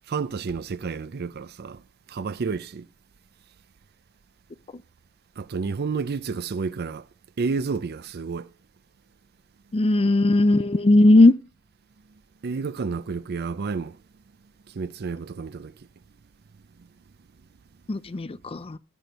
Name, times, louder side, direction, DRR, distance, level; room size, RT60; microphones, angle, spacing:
voice 1, 0.1-1.8 2.1-2.9 5.4-7.0 7.4-8.5 12.4-14.0 14.7-15.7, right 5 dB, 50° right, 0.5 m, -30 dB
voice 2, 9.7-11.3 17.9-18.8, left 2 dB, 25° left, 0.5 m, -18 dB
15.5 x 6.1 x 6.7 m
head